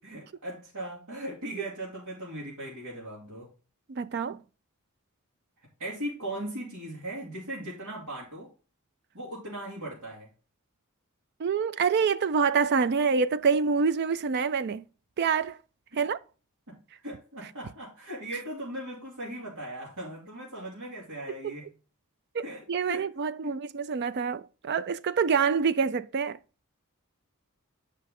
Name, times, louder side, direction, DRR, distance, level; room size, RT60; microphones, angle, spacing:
voice 1, 0.0-3.5 5.8-8.5 9.1-10.3 15.9-16.1 16.7-21.7 22.4-23.1 23.4-23.5, right 1 dB, 85° right, 2.9 m, -38 dB
voice 2, 3.9-4.4 11.4-14.8 15.2-15.6 16.0-16.2 22.3-22.4 22.7-26.4, right 5 dB, 50° right, 0.4 m, -26 dB
8.4 x 5.4 x 3.7 m
head